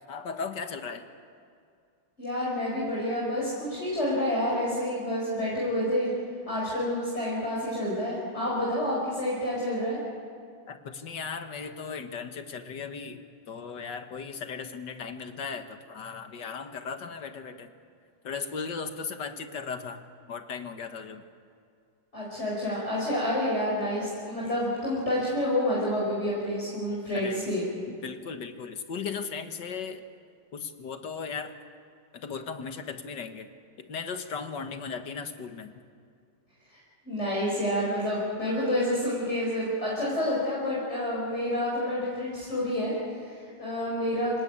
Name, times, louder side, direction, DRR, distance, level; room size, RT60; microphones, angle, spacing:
voice 1, 0.1-1.1 10.7-13.2 13.5-17.7 18.2-20.0 20.3-21.2 27.1-27.5 28.0-30.0 30.5-31.5 32.1-33.5 33.8-35.7, left 5 dB, 60° left, 7 dB, 2.0 m, -37 dB
voice 2, 2.2-6.1 6.5-10.0 22.1-27.6 37.1-44.4, left 1 dB, 30° left, -6 dB, 5.6 m, -29 dB
26.5 x 18.5 x 8.9 m, 2.3 s
omnidirectional pair, 2.2 m